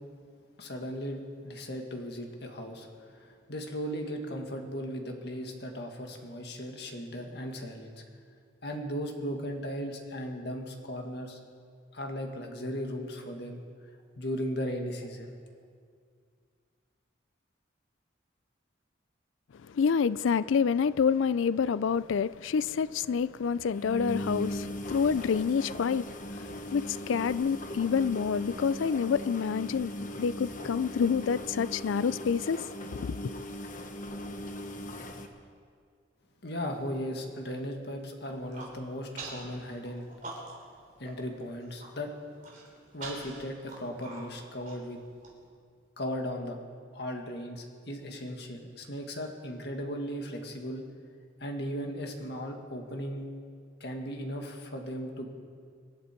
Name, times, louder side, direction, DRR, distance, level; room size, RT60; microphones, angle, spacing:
voice 1, 0.6-8.0 8.6-11.4 11.9-13.6 14.2-15.3 36.4-40.1 41.0-42.1 42.9-45.0 46.0-46.6 46.9-50.8 51.4-53.2 53.8-55.3, equal, 55° left, 2.0 m, -37 dB
voice 2, 19.7-33.3, left 6 dB, 80° left, 0.4 m, -28 dB
sound 1, 21.9-22.1 22.3-22.4 22.7-22.8 23.1-23.2 23.7-35.3, left 1 dB, 40° left, 1.2 m, -39 dB
Human voice, 38.3-38.7 39.2-39.5 39.8-40.7 41.1-41.2 41.5-41.9 42.4-45.3, right 3 dB, 40° right, 4.0 m, -43 dB
26.5 x 11.0 x 4.5 m
head